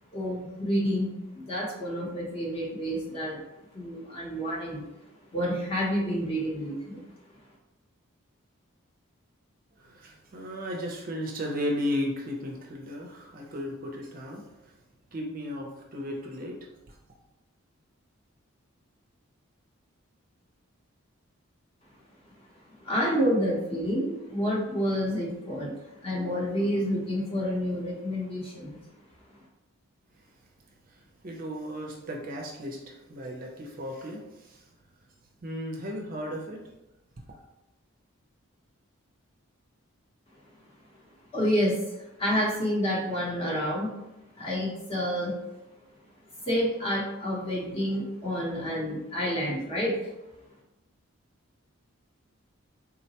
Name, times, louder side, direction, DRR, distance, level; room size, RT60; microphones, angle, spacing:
voice 1, 0.1-3.4 3.7-4.9 5.3-7.0 22.8-28.7 41.3-43.9 44.4-45.3 46.4-50.1, equal, 25° left, -4 dB, 0.7 m, -29 dB
voice 2, 9.8-14.7 15.1-17.0 30.9-34.6 35.4-36.6, left 1 dB, 40° right, 0 dB, 0.5 m, -35 dB
3.8 x 2.1 x 2.8 m, 0.97 s
head